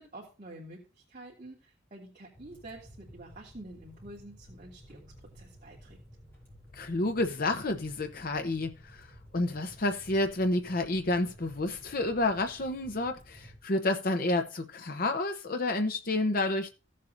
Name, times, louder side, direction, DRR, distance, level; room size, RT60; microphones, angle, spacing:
voice 1, 0.0-6.0, right 1 dB, 40° right, 2.8 m, -48 dB
sound 1, 2.3-13.6, equal, 10° left, 5.7 m, -54 dB
voice 2, 6.7-9.1 9.3-16.7, left 2 dB, 50° left, 0.9 m, -30 dB
16.5 x 7.5 x 2.6 m
head